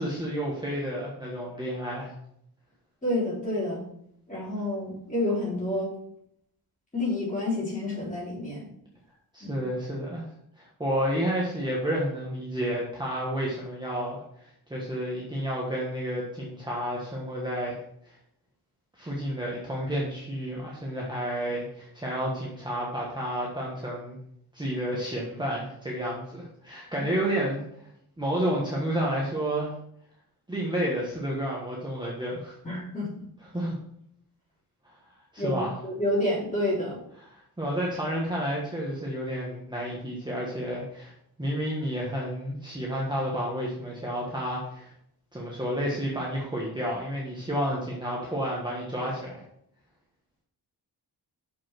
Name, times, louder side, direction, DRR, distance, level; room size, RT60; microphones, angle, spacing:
voice 1, 0.0-2.1 9.3-10.2 10.6-17.8 18.0-18.1 19.0-24.2 24.5-27.6 28.2-29.7 30.5-32.6 33.5-33.7 35.3-35.8 37.6-41.1 41.4-44.9 45.3-49.4, equal, 10° right, -4 dB, 1.4 m, -30 dB
voice 2, 3.0-3.8 4.3-5.9 6.9-8.7 9.4-9.6 27.0-27.1 32.6-33.1 35.4-37.0, left 1 dB, 20° left, -7 dB, 3.7 m, -29 dB
6.8 x 5.5 x 5.9 m, 0.72 s
wide cardioid pair, 165°, 39 cm